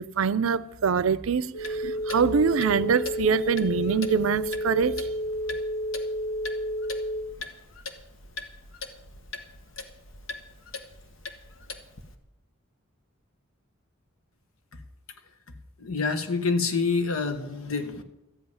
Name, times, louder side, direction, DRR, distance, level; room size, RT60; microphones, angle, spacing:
voice 1, 0.0-5.1, right 6 dB, 75° right, 0.5 m, -24 dB
sound 1, 1.5-7.2, equal, 25° left, 1.0 m, -31 dB
Clock, 1.6-12.1, left 3 dB, 65° left, 1.2 m, -42 dB
voice 2, 15.8-18.0, left 4 dB, 85° left, 1.2 m, -27 dB
13.5 x 5.5 x 9.5 m
head